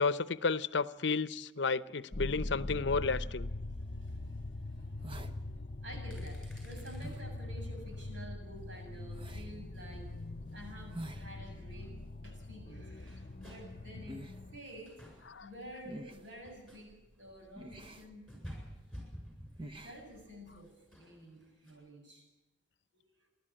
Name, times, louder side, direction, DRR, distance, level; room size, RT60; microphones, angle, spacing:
voice 1, 0.0-3.5 15.3-15.5, left 4 dB, 65° left, 0.7 m, -32 dB
sound 1, 2.1-14.6, left 2 dB, 45° left, 0.9 m, -42 dB
sound 2, 3.4-3.5 3.9-4.1 4.8-4.9 5.2-5.4 5.9-7.2 7.6-8.1 8.6-11.0 11.3-21.7, equal, ahead, 7.6 m, -54 dB
voice 2, 3.6-5.2 5.8-10.1 10.5-11.9 12.2-18.6 19.7-22.2 22.9-23.0, equal, 80° right, 7.6 m, -51 dB
sound 3, 4.1-20.8, right 1 dB, 30° right, 1.1 m, -52 dB
29.5 x 12.0 x 8.9 m
head